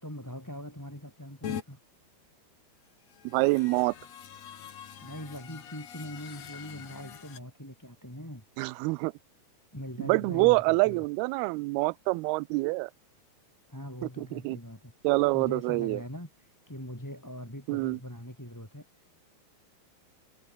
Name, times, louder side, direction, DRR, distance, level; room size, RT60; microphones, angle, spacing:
voice 1, 0.0-1.8 5.0-8.4 9.7-11.0 13.7-14.9 15.3-19.1, equal, 5° left, 4.4 m, -42 dB
sound 1, 1.4-1.6 3.0-7.4, left 9 dB, 50° left, 2.6 m, -43 dB
voice 2, 3.2-3.9 8.6-9.1 10.0-12.9 14.2-14.6 15.0-16.0 17.7-18.0, right 25 dB, 85° right, 2.4 m, -26 dB
omnidirectional pair, 4.8 m